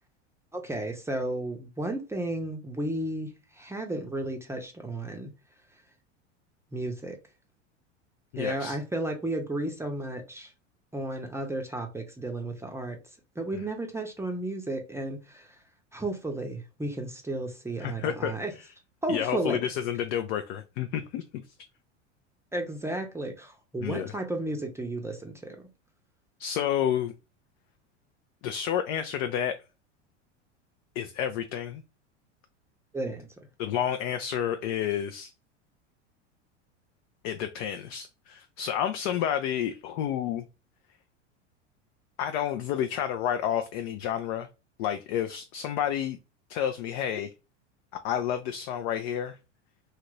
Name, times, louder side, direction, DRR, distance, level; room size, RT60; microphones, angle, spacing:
voice 1, 0.5-5.3 6.7-7.2 8.4-10.5 10.9-13.0 13.4-15.5 15.9-18.5 19.0-19.6 22.5-25.7 32.9-33.3, right 1 dB, 5° right, 0.6 m, -33 dB
voice 2, 8.3-8.8 17.8-18.7 19.1-21.4 23.8-24.1 26.4-27.1 28.4-29.6 31.0-31.8 33.6-35.3 37.2-40.4 42.2-44.5 44.8-46.2 46.5-47.3 48.0-49.4, left 9 dB, 55° left, 0.5 m, -30 dB
2.8 x 2.4 x 3.0 m
hypercardioid pair, 95°, 36 cm